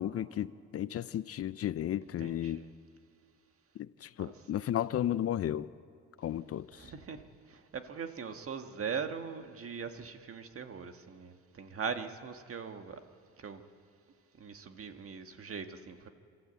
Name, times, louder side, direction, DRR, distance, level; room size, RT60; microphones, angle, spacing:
voice 1, 0.0-2.6 3.8-5.7 6.2-6.7, left 11 dB, 50° left, 0.5 m, -34 dB
voice 2, 2.2-2.7 4.2-4.3 6.7-13.0 13.4-13.6 14.4-16.1, right 6 dB, 50° right, 1.6 m, -41 dB
27.5 x 13.5 x 8.1 m
cardioid pair, 90°, 30 cm